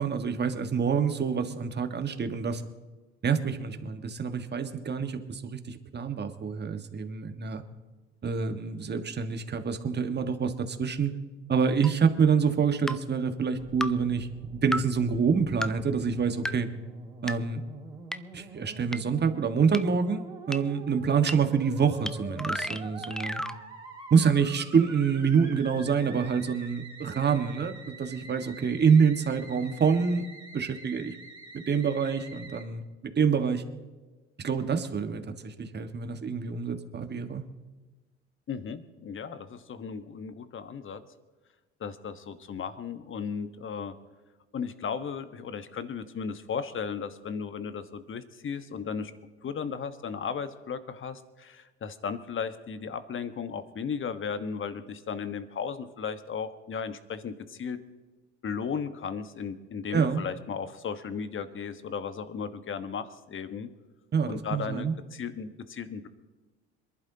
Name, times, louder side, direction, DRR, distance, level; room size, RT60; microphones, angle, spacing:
voice 1, 0.0-2.6 3.2-7.6 8.2-11.1 11.5-16.7 17.2-17.6 18.3-23.4 24.1-30.3 30.5-31.2 31.7-32.8 33.1-33.6 34.4-37.4 59.9-60.2 64.1-64.9, right 6 dB, 30° right, 7 dB, 1.6 m, -26 dB
sound 1, 11.8-11.9 12.9-13.0 13.8-13.9 14.7-14.8 15.6-15.7 16.4-16.5 17.3-17.4 18.1-18.2 18.9-19.0 19.7-19.8 20.5-20.6 21.3-21.4 22.1-22.2 22.4-23.6, equal, ahead, 0.5 m, -31 dB
Musical instrument, 13.6-32.6, right 3 dB, 15° right, 3.9 m, -46 dB
voice 2, 38.5-41.0 41.8-43.9 44.5-49.1 49.4-57.8 58.4-63.7 64.3-66.1, left 6 dB, 35° left, 11 dB, 1.3 m, -35 dB
26.5 x 11.5 x 2.9 m, 1.3 s
hypercardioid pair, 60°, 34 cm